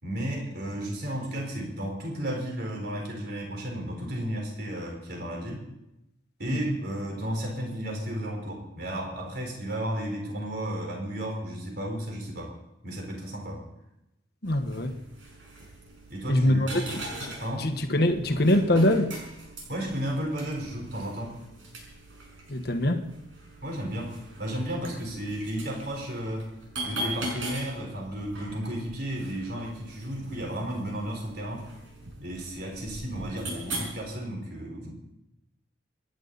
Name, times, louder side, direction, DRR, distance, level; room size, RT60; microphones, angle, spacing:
voice 1, 0.0-5.6 6.4-12.5 12.8-13.6 16.1-16.9 17.4-17.7 19.7-21.4 23.6-26.5 26.8-31.7 32.2-34.9, right 1 dB, 55° right, 0 dB, 4.5 m, -33 dB
voice 2, 14.4-15.0 16.3-17.3 17.6-19.1 22.5-23.0, left 1 dB, 55° left, 6 dB, 1.5 m, -24 dB
sound 1, 14.4-33.9, right 1 dB, 80° right, 6.2 m, -41 dB
27.0 x 11.5 x 4.2 m, 0.88 s
head